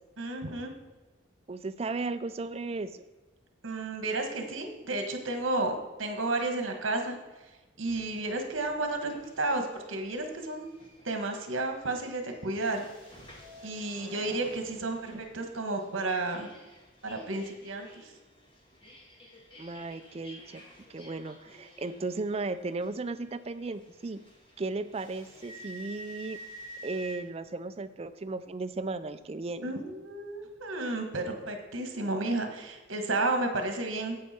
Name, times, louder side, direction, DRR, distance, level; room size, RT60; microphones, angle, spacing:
voice 1, 0.2-0.7 3.6-7.2 7.8-10.7 11.0-12.8 13.6-16.5 17.0-18.1 29.6-34.2, right 2 dB, 75° right, 5 dB, 1.5 m, -32 dB
voice 2, 1.5-2.9 19.6-20.6 20.9-24.2 24.6-26.4 26.8-29.7, right 3 dB, 30° right, 12 dB, 0.4 m, -35 dB
sound 1, 7.8-27.2, equal, 25° left, 1.8 m, -51 dB
11.0 x 8.2 x 4.3 m, 1.2 s
head